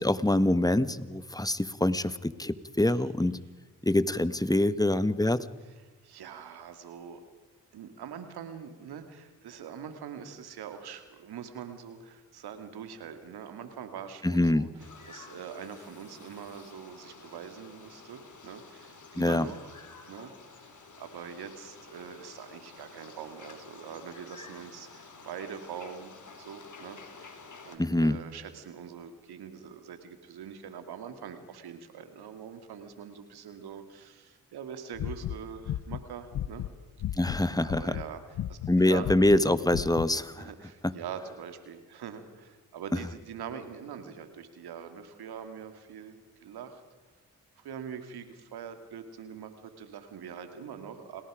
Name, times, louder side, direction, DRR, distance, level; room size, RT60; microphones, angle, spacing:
voice 1, 0.0-3.4 3.8-5.4 14.2-14.7 19.2-19.5 27.8-28.2 37.1-38.0 38.7-40.5 40.8-40.9, left 1 dB, 10° left, 14 dB, 1.5 m, -25 dB
voice 2, 6.0-7.2 7.7-19.8 20.1-20.3 20.6-26.1 26.4-36.6 37.6-38.6 38.9-39.1 40.4-46.8 47.6-51.2, right 7 dB, 80° right, 8 dB, 2.6 m, -43 dB
sound 1, 14.8-27.8, left 4 dB, 50° left, 4.4 m, -50 dB
sound 2, 35.0-37.4 37.7-38.1 38.3-38.7 39.0-39.4 39.7-40.1, left 11 dB, 65° left, 0.9 m, -34 dB
29.0 x 19.0 x 5.1 m, 1.3 s
supercardioid pair, 40°, 38 cm